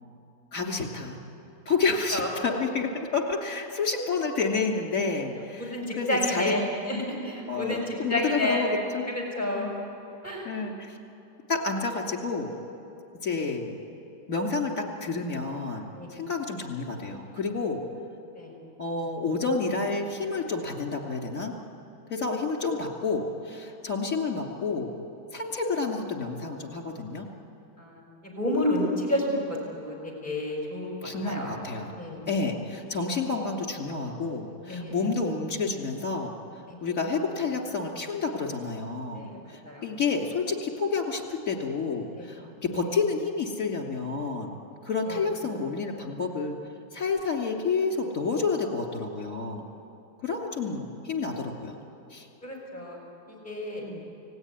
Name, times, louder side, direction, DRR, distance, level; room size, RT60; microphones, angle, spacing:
voice 1, 0.5-1.2 1.7-6.6 7.5-9.1 9.5-9.8 10.5-11.0 11.5-12.5 13.2-13.8 14.3-17.8 18.8-21.6 22.1-24.9 25.3-27.3 31.0-31.9 32.3-39.2 39.5-44.5 44.8-46.6 46.9-49.7 50.2-51.8 52.1-52.3 53.8-54.0, left 4 dB, 50° left, 2 dB, 3.4 m, -29 dB
voice 2, 5.6-8.7 9.1-9.7 10.2-10.5 15.9-16.1 18.4-18.5 27.8-31.6 32.0-32.3 34.6-34.9 36.7-36.8 39.1-39.8 42.2-42.3 45.1-45.2 52.4-53.0 53.4-53.8, left 1 dB, 25° left, -1 dB, 5.8 m, -30 dB
29.5 x 18.5 x 9.7 m, 2.7 s
omnidirectional pair, 1.8 m